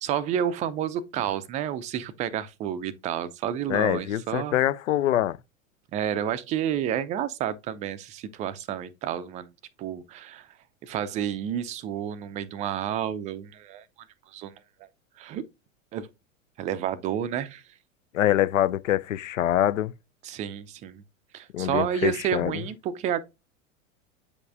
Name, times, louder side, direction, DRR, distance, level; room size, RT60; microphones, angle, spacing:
voice 1, 0.0-4.6 5.9-9.5 9.8-10.5 10.8-13.8 14.3-14.5 15.2-15.5 15.9-16.1 16.6-17.6 20.2-21.0 21.3-23.2, right 9 dB, 20° right, 0.4 m, -30 dB
voice 2, 3.7-5.4 18.1-19.9 21.5-22.5, left 12 dB, 75° left, 0.5 m, -24 dB
8.3 x 5.3 x 2.5 m
figure-of-eight pair, 90°, 40 cm